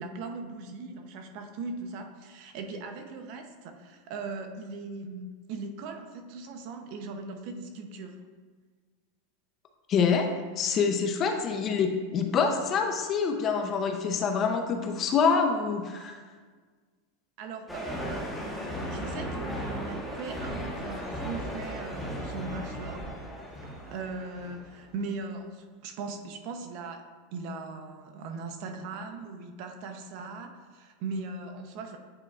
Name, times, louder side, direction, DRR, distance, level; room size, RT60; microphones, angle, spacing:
voice 1, 0.0-8.2 17.4-23.2 23.9-27.0 27.3-32.0, right 3 dB, 50° right, 5 dB, 0.7 m, -39 dB
voice 2, 9.9-10.3 10.6-16.2, left 5 dB, 30° left, 4 dB, 0.6 m, -26 dB
sound 1, 17.7-24.8, equal, ahead, 1.1 m, -36 dB
8.8 x 4.4 x 2.4 m, 1.5 s
supercardioid pair, 140°, 0 cm